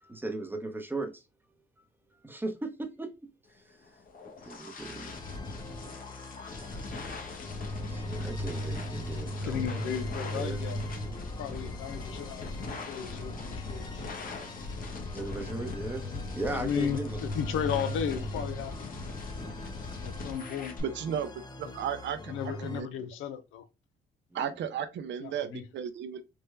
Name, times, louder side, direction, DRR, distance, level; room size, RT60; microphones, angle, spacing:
voice 1, 0.0-1.2 2.2-4.0 4.4-5.2 7.9-9.9 10.3-10.7 15.1-17.2 24.3-24.5, right 2 dB, 10° right, 0.7 m, -38 dB
sound 1, 3.8-20.8, left 3 dB, 45° left, 0.8 m, -40 dB
sound 2, 4.8-22.8, equal, 20° left, 0.5 m, -41 dB
voice 2, 9.5-10.8 11.4-14.1 16.1-16.2 16.5-18.9 20.0-20.8 21.6-21.7 22.3-23.7 25.2-25.7, left 8 dB, 80° left, 0.5 m, -35 dB
voice 3, 20.8-21.3 21.6-22.3 22.6-22.9 24.3-26.2, right 8 dB, 65° right, 0.5 m, -34 dB
3.4 x 2.1 x 3.1 m
cardioid pair, 90°, 20 cm